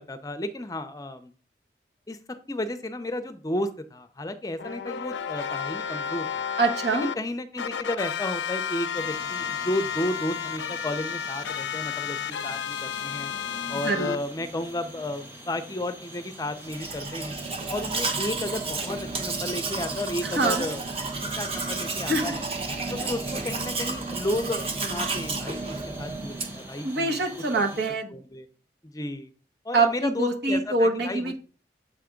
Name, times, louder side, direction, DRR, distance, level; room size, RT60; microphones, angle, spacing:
voice 1, 0.0-1.3 2.1-2.2 2.5-6.4 7.0-13.3 13.7-17.4 17.7-20.8 21.4-22.4 22.9-27.2 28.1-28.5 28.8-29.3 29.6-31.4, left 1 dB, 20° left, 9 dB, 0.5 m, -33 dB
sound 1, 4.6-7.2 7.6-14.2, left 8 dB, 85° left, 0.4 m, -32 dB
voice 2, 6.6-7.1 13.7-14.1 20.2-20.6 22.1-22.3 26.8-28.1 29.7-31.4, right 3 dB, 70° right, 3 dB, 1.2 m, -25 dB
sound 2, 8.9-27.9, equal, 15° right, 1.2 m, -44 dB
Domestic sounds home sounds, 16.6-26.7, right 3 dB, 35° right, 0.9 m, -32 dB
7.4 x 3.5 x 5.0 m, 0.39 s
head